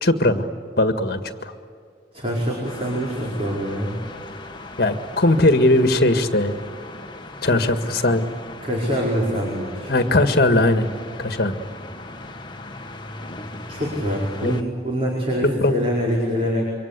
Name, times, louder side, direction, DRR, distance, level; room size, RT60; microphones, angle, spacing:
voice 1, 0.0-0.5 0.8-1.5 4.8-6.6 7.4-8.2 9.9-10.9 11.2-11.5 14.4-14.5 15.6-15.7, left 1 dB, 60° left, 8 dB, 1.8 m, -19 dB
voice 2, 2.1-4.0 8.6-9.9 13.7-14.6 14.8-16.6, equal, 35° right, -3 dB, 4.9 m, -24 dB
sound 1, 2.6-14.6, left 2 dB, 25° left, 1.5 m, -38 dB
27.0 x 24.5 x 8.4 m, 2.2 s
head